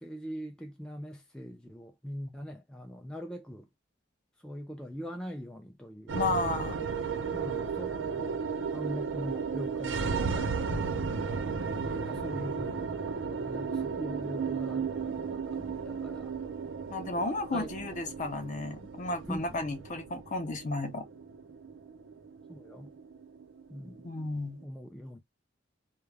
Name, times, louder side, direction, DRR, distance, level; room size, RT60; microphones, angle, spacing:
voice 1, 0.0-3.7 4.4-6.2 7.3-8.4 8.7-10.5 10.8-11.1 11.6-16.3 17.5-17.7 19.3-19.6 22.5-22.9 23.7-24.1 24.6-25.2, equal, 5° left, 0.3 m, -42 dB
voice 2, 6.1-6.8 16.9-21.0 24.0-24.6, left 2 dB, 40° left, 0.6 m, -33 dB
sound 1, 6.1-24.5, right 5 dB, 90° right, 0.5 m, -34 dB
2.3 x 2.0 x 3.2 m
head